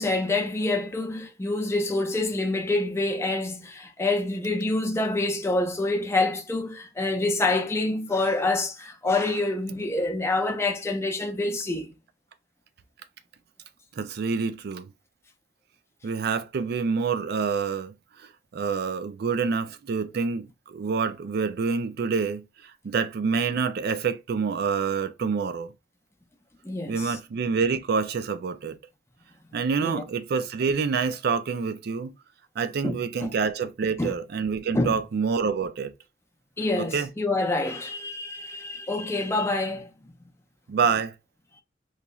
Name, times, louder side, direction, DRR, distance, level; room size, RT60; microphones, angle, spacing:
voice 1, 0.0-11.9 26.6-27.1 29.8-30.1 32.8-33.3 34.0-34.1 34.7-35.0 36.6-39.9, left 2 dB, 15° left, 0.5 m, -27 dB
voice 2, 14.0-14.9 16.0-25.7 26.9-28.8 29.5-32.1 32.6-35.9 36.8-37.1 40.7-41.1, right 5 dB, 60° right, 0.4 m, -27 dB
3.9 x 3.0 x 2.3 m
head